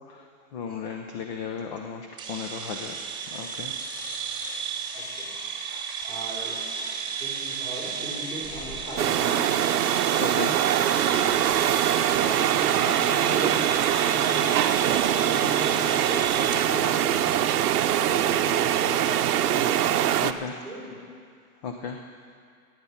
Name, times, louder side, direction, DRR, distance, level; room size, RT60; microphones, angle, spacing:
voice 1, 0.5-3.0 3.3-4.3 5.7-5.8 10.1-11.0 20.2-20.6 21.6-22.0, left 6 dB, 30° left, 4 dB, 0.5 m, -36 dB
sound 1, 2.2-16.7, right 6 dB, 10° right, 1.1 m, -33 dB
voice 2, 4.9-5.3 6.0-9.9 11.1-11.4 12.2-14.8 15.1-17.3 17.7-19.9 20.6-21.1, right 1 dB, 10° left, -5 dB, 3.3 m, -38 dB
sound 2, 9.0-20.3, right 11 dB, 90° right, 0.7 m, -23 dB
sound 3, 12.2-13.0 13.8-14.4 14.9-15.7 16.2-16.8 17.1-17.9 18.2-18.6 19.0-19.6, right 9 dB, 40° right, 0.7 m, -40 dB
15.0 x 9.5 x 5.7 m, 2.2 s
supercardioid pair, 160°, 45 cm